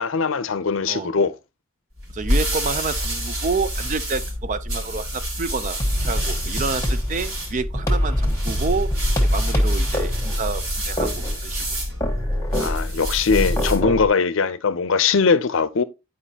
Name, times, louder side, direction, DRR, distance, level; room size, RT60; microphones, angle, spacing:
voice 1, 0.0-1.3 12.6-15.8, left 5 dB, 65° left, 0.6 m, -21 dB
sound 1, 2.0-13.9, equal, 80° right, 3.5 m, -28 dB
voice 2, 2.1-8.9 9.2-11.8, right 4 dB, 35° right, 0.5 m, -29 dB
sound 2, 5.8-14.1, equal, 15° left, 1.4 m, -24 dB
10.0 x 4.9 x 2.8 m
head